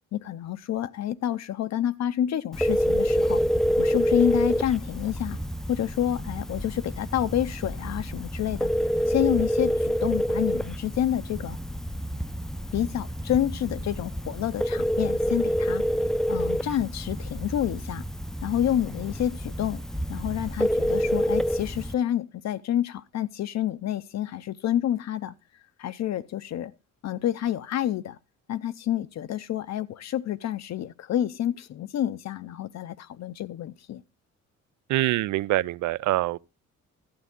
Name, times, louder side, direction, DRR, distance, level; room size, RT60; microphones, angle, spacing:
voice 1, 0.1-3.4 3.8-5.4 5.7-8.7 9.1-11.6 12.7-15.8 16.3-18.0 18.4-19.8 20.1-25.3 25.8-26.7 27.0-28.2 28.5-34.0, left 11 dB, 60° left, 0.6 m, -28 dB
Telephone, 2.5-21.9, equal, ahead, 0.5 m, -27 dB
voice 2, 34.9-36.4, right 16 dB, 75° right, 0.5 m, -25 dB
12.5 x 8.1 x 3.7 m
cardioid pair, 90°, 30 cm